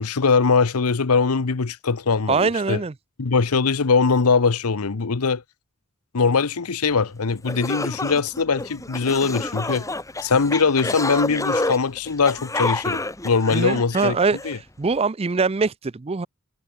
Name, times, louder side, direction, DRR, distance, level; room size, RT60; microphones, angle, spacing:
voice 1, 0.0-2.8 3.2-5.4 6.1-9.9 10.2-14.2 14.4-14.6, left 4 dB, 80° left, 0.9 m, -21 dB
voice 2, 2.3-2.9 13.5-14.4 14.8-16.3, right 4 dB, 25° right, 0.5 m, -22 dB
sound 1, 7.1-7.2 7.4-14.5, left 2 dB, 15° left, 1.5 m, -29 dB
head